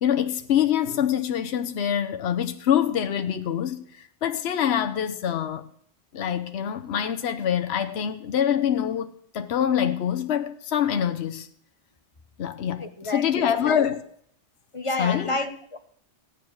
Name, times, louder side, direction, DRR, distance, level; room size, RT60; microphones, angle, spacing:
voice 1, 0.0-5.6 6.1-9.1 9.3-11.5 12.4-14.0 15.0-15.4, left 9 dB, 70° left, 1.1 m, -25 dB
voice 2, 12.8-13.9 14.7-15.8, left 2 dB, 30° left, 1.0 m, -30 dB
15.5 x 9.3 x 6.4 m
omnidirectional pair, 1.1 m